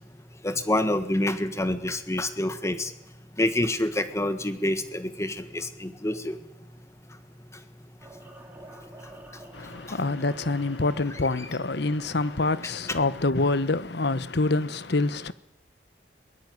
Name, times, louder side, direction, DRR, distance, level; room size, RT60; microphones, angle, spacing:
voice 1, 0.4-2.9 3.4-6.4 12.6-13.0, left 1 dB, 15° left, 1.7 m, -27 dB
sound 1, 8.0-14.0, right 1 dB, 10° right, 5.2 m, -50 dB
voice 2, 9.5-15.3, left 2 dB, 65° left, 1.1 m, -26 dB
22.0 x 19.5 x 9.5 m
head